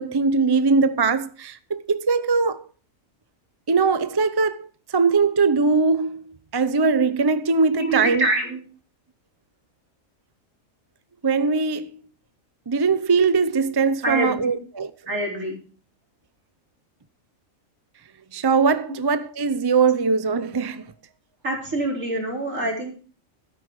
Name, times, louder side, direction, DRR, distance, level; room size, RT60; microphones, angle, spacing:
voice 1, 0.0-2.6 3.7-8.3 11.2-12.0 12.7-14.9 18.3-20.9, right 4 dB, 25° right, 0.5 m, -21 dB
voice 2, 7.8-8.6 14.0-14.5 15.1-15.5 21.4-22.9, right 1 dB, 70° right, 4.5 m, -25 dB
13.0 x 10.0 x 4.7 m
omnidirectional pair, 1.4 m